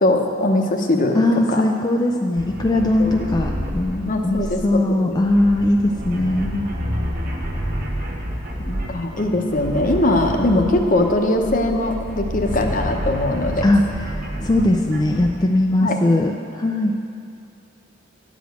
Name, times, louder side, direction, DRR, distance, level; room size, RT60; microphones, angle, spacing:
voice 1, 0.0-1.2 1.5-1.6 2.7-3.1 4.1-5.2 8.6-13.7 15.8-16.0, left 1 dB, 45° left, 4 dB, 0.9 m, -21 dB
voice 2, 1.1-6.7 13.6-16.9, left 1 dB, 20° left, 2 dB, 0.4 m, -20 dB
sound 1, 2.4-15.5, equal, 50° right, 1.5 m, -29 dB
11.0 x 5.1 x 7.9 m, 2.6 s
head